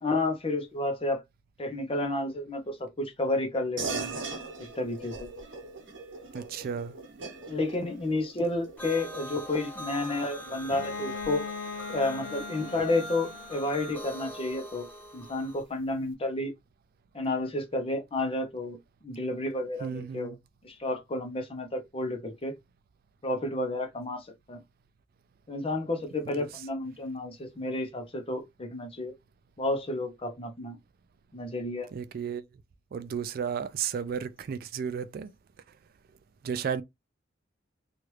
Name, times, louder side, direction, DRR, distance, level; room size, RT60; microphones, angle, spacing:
voice 1, 0.0-1.2 1.6-4.1 4.6-5.3 7.5-11.5 11.9-14.9 15.1-16.5 17.1-18.8 19.0-20.3 20.6-22.5 23.2-24.6 25.5-29.1 29.6-30.8 31.3-31.9, left 2 dB, 30° left, 0.7 m, -31 dB
sound 1, 3.8-13.6, right 3 dB, 75° right, 1.0 m, -42 dB
voice 2, 6.3-6.9 19.8-20.4 26.2-26.5 31.9-32.4 32.9-35.3 36.4-36.8, right 7 dB, 50° right, 0.3 m, -33 dB
sound 2, 8.8-15.6, equal, 10° left, 1.1 m, -42 dB
Bowed string instrument, 10.7-14.4, left 5 dB, 70° left, 0.7 m, -40 dB
3.0 x 2.4 x 3.1 m
head